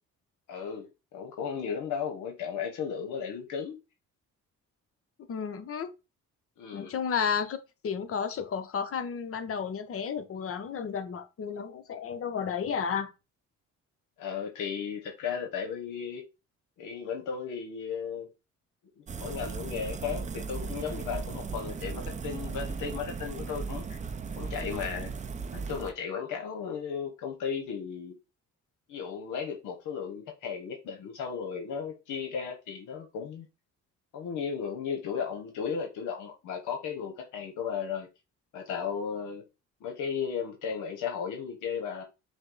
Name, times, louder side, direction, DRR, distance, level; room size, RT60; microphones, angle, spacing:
voice 1, 0.5-3.8 6.6-6.9 14.2-16.3 16.8-18.3 19.0-24.0 24.3-25.1 25.5-28.1 28.9-33.5 34.1-38.1 38.5-39.4 39.8-42.0, left 6 dB, 80° left, 0.8 m, -35 dB
voice 2, 5.3-5.9 6.7-7.6 7.8-13.1, left 6 dB, 50° left, 0.7 m, -32 dB
sound 1, 19.1-25.9, right 5 dB, 25° right, 0.4 m, -37 dB
5.1 x 2.0 x 3.8 m
cardioid pair, 90°, 30 cm